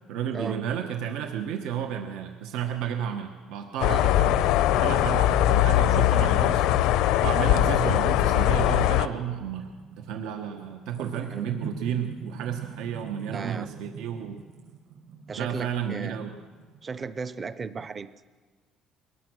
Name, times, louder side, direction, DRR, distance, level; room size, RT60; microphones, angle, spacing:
voice 1, 0.1-4.4 4.8-6.6 7.2-9.7 10.0-14.4 15.4-16.4, right 8 dB, 85° right, 5 dB, 1.3 m, -32 dB
sound 1, 3.8-9.1, left 13 dB, 85° left, 0.7 m, -21 dB
sound 2, 9.5-17.3, right 6 dB, 60° right, 5.5 m, -44 dB
voice 2, 11.0-11.6 13.3-13.9 15.3-16.2 16.8-18.1, right 5 dB, 25° right, 14 dB, 0.6 m, -36 dB
22.5 x 18.5 x 6.3 m, 1.5 s
cardioid pair, 165°, 0 cm